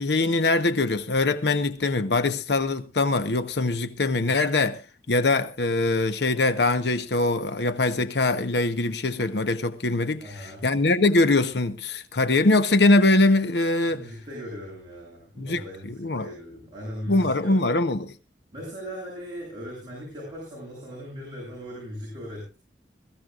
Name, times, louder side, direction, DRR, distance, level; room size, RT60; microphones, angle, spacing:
voice 1, 0.0-4.8 5.1-14.0 15.4-16.3 17.1-18.1, left 2 dB, 70° left, 0.9 m, -22 dB
voice 2, 10.2-10.7 13.9-17.7 18.5-22.6, equal, 25° right, 7.9 m, -38 dB
21.5 x 14.5 x 2.5 m
head